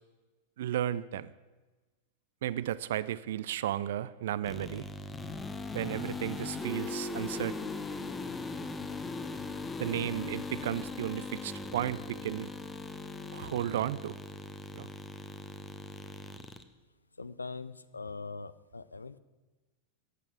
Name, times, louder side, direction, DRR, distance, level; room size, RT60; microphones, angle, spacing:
voice 1, 0.6-1.3 2.4-4.9 5.7-7.6 9.8-12.5 13.3-14.2 14.7-14.9, right 12 dB, 55° right, 17 dB, 0.5 m, -34 dB
sound 1, 4.4-16.6, left 3 dB, 15° left, 1.1 m, -39 dB
voice 2, 17.2-19.2, left 4 dB, 80° left, 17 dB, 0.6 m, -42 dB
14.5 x 8.5 x 8.4 m, 1.2 s
figure-of-eight pair, 90°, 0 cm